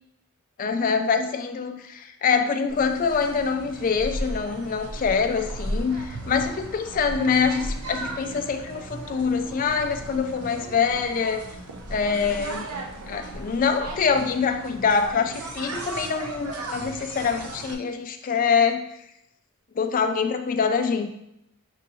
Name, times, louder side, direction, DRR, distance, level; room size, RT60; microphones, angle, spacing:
voice 1, 0.6-11.4 11.9-12.7 13.1-18.8 19.8-21.1, left 5 dB, 40° left, 6 dB, 0.3 m, -25 dB
sound 1, 2.7-17.7, right 1 dB, 80° right, 0.6 m, -36 dB
6.2 x 2.7 x 2.7 m, 0.79 s
head